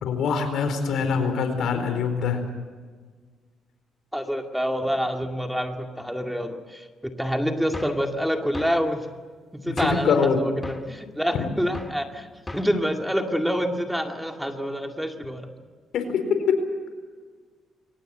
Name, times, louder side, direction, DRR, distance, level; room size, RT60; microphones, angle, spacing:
voice 1, 0.0-2.4 9.7-10.4 11.3-11.4 15.9-16.6, left 6 dB, 75° left, 8 dB, 4.4 m, -24 dB
voice 2, 4.1-9.1 9.5-12.3 12.5-15.5, equal, ahead, 4 dB, 2.2 m, -27 dB
sound 1, 7.7-8.1 8.5-8.8 9.8-10.2 10.6-10.9 11.7-12.0 12.5-12.8, left 1 dB, 15° left, 1.8 m, -35 dB
24.0 x 19.0 x 7.9 m, 1.5 s
cardioid pair, 90°, 0 cm